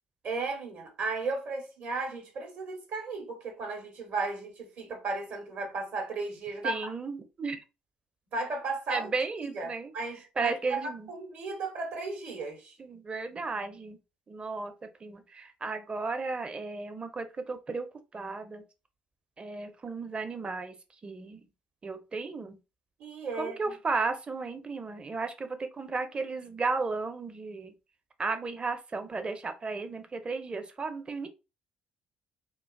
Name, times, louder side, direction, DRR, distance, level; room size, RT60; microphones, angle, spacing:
voice 1, 0.2-6.9 8.3-9.1 9.4-12.7 23.0-23.6, right 3 dB, 60° right, 1.0 m, -35 dB
voice 2, 6.6-7.6 8.9-9.9 10.4-11.1 12.8-14.0 14.3-14.7 15.0-17.9 18.1-18.6 19.4-20.8 21.0-21.4 21.8-22.6 23.3-27.7 28.2-31.3, right 4 dB, 30° right, 0.5 m, -34 dB
2.4 x 2.3 x 2.3 m
hypercardioid pair, 55°, 4 cm